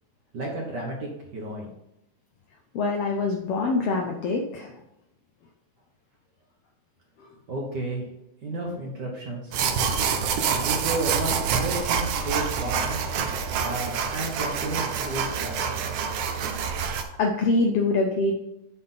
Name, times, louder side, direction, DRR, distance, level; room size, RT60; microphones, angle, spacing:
voice 1, 0.3-1.7 7.5-8.1 8.4-10.0 10.6-13.0 13.6-15.9, right 2 dB, 55° right, -1 dB, 1.2 m, -32 dB
voice 2, 2.7-4.7 16.6-16.9 17.2-18.3, left 3 dB, 80° left, 2 dB, 1.3 m, -25 dB
sound 1, 9.5-17.0, right 6 dB, 80° right, 1.4 m, -27 dB
9.1 x 3.9 x 5.6 m, 0.85 s
omnidirectional pair, 3.6 m